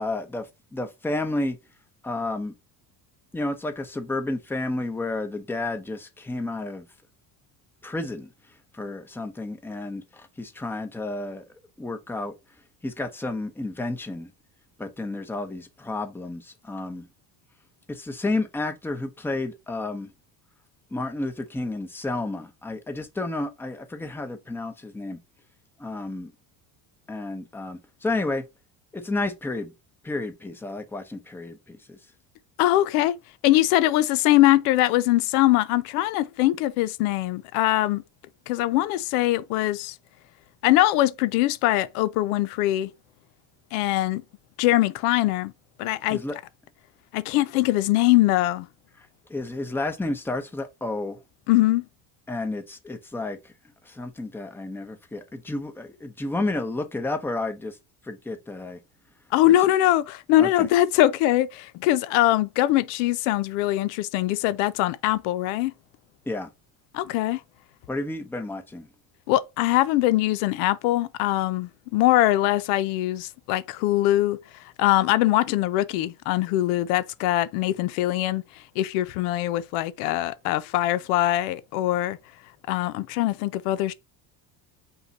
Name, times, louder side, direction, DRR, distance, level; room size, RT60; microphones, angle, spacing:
voice 1, 0.0-1.6 2.0-2.5 3.3-6.8 7.8-8.3 8.7-11.4 11.8-12.3 12.8-14.3 14.8-17.1 17.9-20.1 20.9-25.2 25.8-26.3 27.1-28.5 28.9-29.7 30.0-32.0 46.1-46.4 49.3-51.2 52.3-53.5 53.8-57.8 58.0-58.8 60.4-60.7 66.3-66.5 67.9-68.9, left 2 dB, 5° left, 0.7 m, -31 dB
voice 2, 32.6-33.2 33.4-38.0 38.5-40.0 40.6-42.9 43.7-44.2 44.6-45.5 45.8-46.2 47.1-48.7 51.5-51.9 59.3-65.7 66.9-67.4 69.3-82.2 82.7-83.9, left 15 dB, 90° left, 0.6 m, -22 dB
5.4 x 2.3 x 4.1 m
cardioid pair, 120°, 44 cm